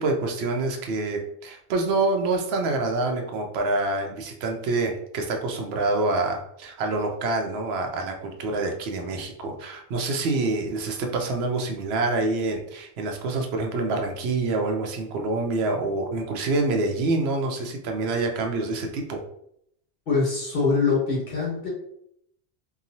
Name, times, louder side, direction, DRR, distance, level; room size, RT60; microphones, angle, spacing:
voice 1, 0.0-19.2, right 3 dB, 75° right, 3 dB, 0.8 m, -26 dB
voice 2, 20.1-21.7, left 4 dB, 60° left, -5 dB, 1.3 m, -23 dB
2.9 x 2.3 x 2.6 m, 0.73 s
omnidirectional pair, 1.1 m